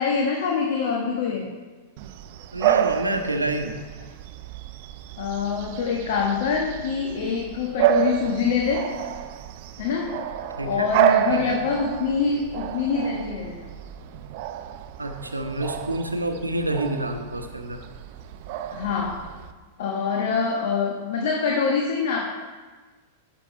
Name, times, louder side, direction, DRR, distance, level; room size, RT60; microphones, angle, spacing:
voice 1, 0.0-1.5 5.2-8.9 9.8-10.2 10.6-13.8 18.7-19.2 19.8-22.2, left 5 dB, 60° left, 0 dB, 1.2 m, -25 dB
Bark / Bird vocalization bird call bird song, 2.0-19.5, right 11 dB, 50° right, 0.5 m, -29 dB
voice 2, 2.5-3.7 10.6-10.9 11.3-11.6 15.0-17.8, right 1 dB, 90° right, 6 dB, 0.9 m, -28 dB
11.5 x 7.7 x 4.4 m, 1.4 s
figure-of-eight pair, 95°, 0 cm